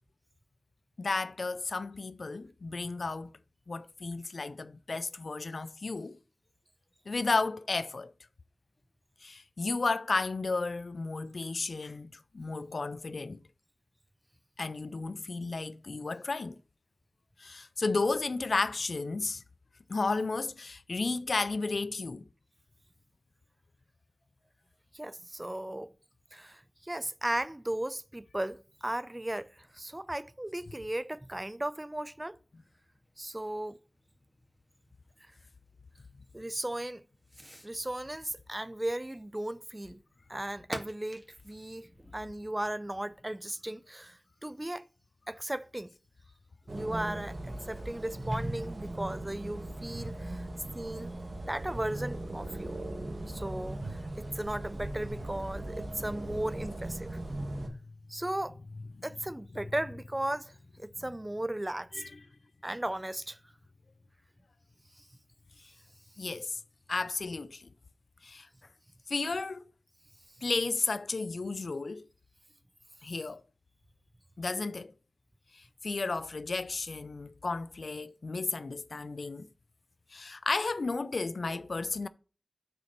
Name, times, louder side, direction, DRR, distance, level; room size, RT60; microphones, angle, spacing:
voice 1, 1.0-3.3 3.7-6.2 7.1-8.1 9.2-13.4 14.6-16.6 17.4-19.4 19.9-22.3 59.0-59.1 61.9-62.2 66.2-66.6 66.9-67.7 68.2-68.5 69.1-69.6 70.4-72.1 73.0-73.4 74.4-74.9 75.5-79.5 80.1-82.1, left 3 dB, 75° left, 0.4 m, -33 dB
voice 2, 24.9-25.9 26.3-32.4 33.2-33.8 36.3-37.0 37.6-40.0 40.3-44.8 45.3-45.9 46.7-50.4 50.7-51.1 51.4-52.8 53.3-57.2 58.1-58.6 59.0-62.0 62.6-63.4 65.0-65.1, right 1 dB, 25° right, 0.5 m, -36 dB
Fireworks, 28.6-43.2, equal, 5° right, 2.0 m, -54 dB
sound 1, 46.7-57.7, right 1 dB, 60° right, 1.6 m, -38 dB
6.7 x 4.2 x 6.5 m
cardioid pair, 40°, 0 cm